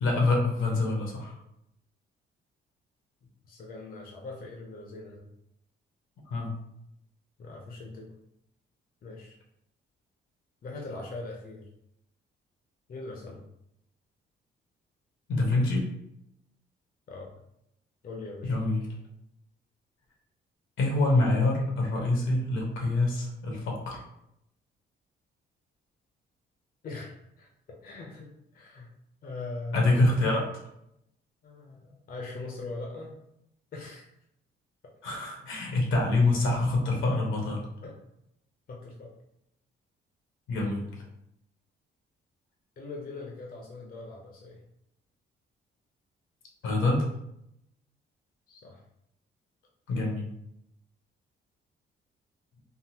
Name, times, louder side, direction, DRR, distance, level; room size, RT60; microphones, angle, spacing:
voice 1, 0.0-1.4 6.3-6.5 15.3-15.9 18.4-18.8 20.8-24.0 29.7-30.6 35.0-37.7 40.5-41.0 46.6-47.1 49.9-50.3, left 2 dB, 80° left, -1 dB, 1.0 m, -26 dB
voice 2, 3.2-5.3 7.4-8.1 9.0-9.4 10.6-11.7 12.9-13.4 17.1-17.4 18.0-18.6 26.8-28.9 29.2-30.1 31.4-33.2 33.7-34.1 34.8-34.9 37.8-38.0 38.7-39.1 42.8-44.6 48.5-48.8, left 3 dB, 45° left, -1 dB, 0.6 m, -41 dB
3.6 x 2.0 x 2.8 m, 0.79 s
cardioid pair, 90°, 20 cm